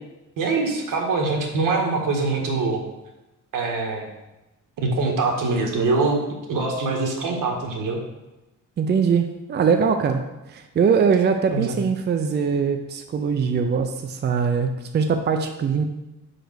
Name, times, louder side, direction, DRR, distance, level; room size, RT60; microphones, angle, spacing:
voice 1, 0.4-2.8 3.5-4.1 4.8-6.2 6.5-8.0 11.5-11.8, right 3 dB, 80° right, 1 dB, 1.6 m, -23 dB
voice 2, 8.8-15.8, right 6 dB, 35° right, 6 dB, 0.5 m, -22 dB
5.1 x 5.0 x 6.3 m, 0.99 s
cardioid pair, 145°, 32 cm